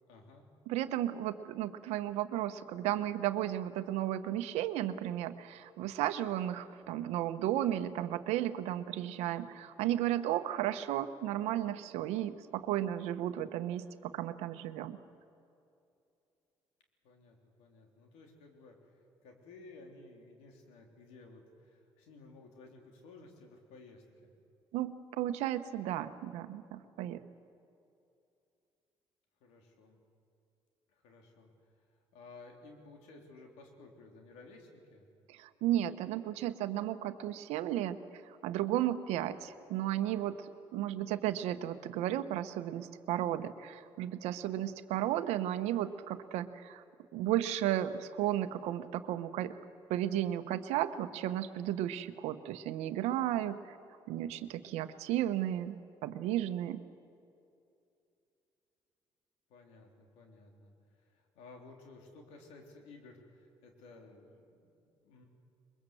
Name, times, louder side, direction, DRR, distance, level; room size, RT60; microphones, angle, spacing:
voice 1, 0.1-0.5 17.0-24.3 29.4-30.0 30.9-35.1 59.5-65.3, left 3 dB, 90° left, 2 dB, 3.5 m, -55 dB
voice 2, 0.7-15.0 24.7-27.2 35.3-38.0 38.4-46.8 47.1-49.5 49.9-53.8 54.1-55.8 56.0-56.8, right 12 dB, 85° right, 11 dB, 1.0 m, -34 dB
22.5 x 22.5 x 7.8 m, 2.6 s
supercardioid pair, 70°, 11 cm